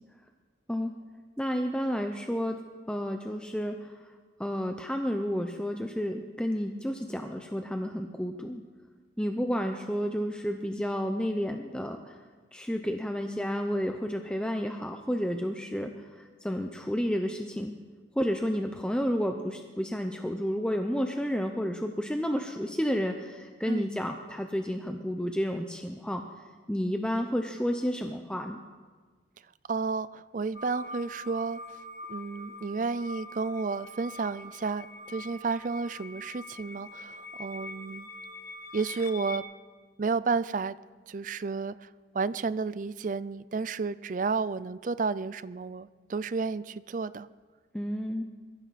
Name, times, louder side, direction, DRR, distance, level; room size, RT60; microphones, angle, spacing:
voice 1, 1.4-2.6 2.9-3.9 4.4-8.6 9.2-12.2 12.5-15.9 16.4-17.7 18.2-26.3 26.7-28.6 47.7-48.2, equal, 5° left, 5 dB, 0.6 m, -31 dB
voice 2, 29.7-31.6 32.1-38.1 38.7-39.4 40.0-40.8 41.1-41.9 42.1-47.3, right 4 dB, 40° right, 16 dB, 0.4 m, -32 dB
sound 1, 30.5-39.4, left 2 dB, 50° left, 1.2 m, -44 dB
22.0 x 15.0 x 4.2 m, 1.4 s
head